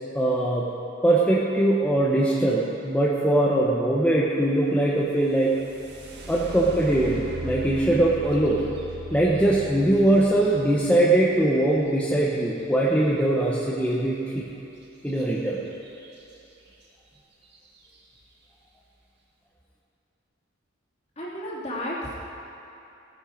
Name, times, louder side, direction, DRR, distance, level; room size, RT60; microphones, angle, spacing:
voice 1, 0.1-0.7 1.0-5.5 6.3-8.7 9.1-14.5 15.0-15.6, right 1 dB, 5° left, -5 dB, 1.0 m, -21 dB
sound 1, 5.2-13.0 15.1-15.2 15.7-16.2 16.8-16.9 17.4-17.8, right 2 dB, 60° right, 2.1 m, -39 dB
voice 2, 21.2-22.1, equal, 35° left, -6 dB, 3.0 m, -32 dB
16.5 x 9.8 x 5.2 m, 2.8 s
head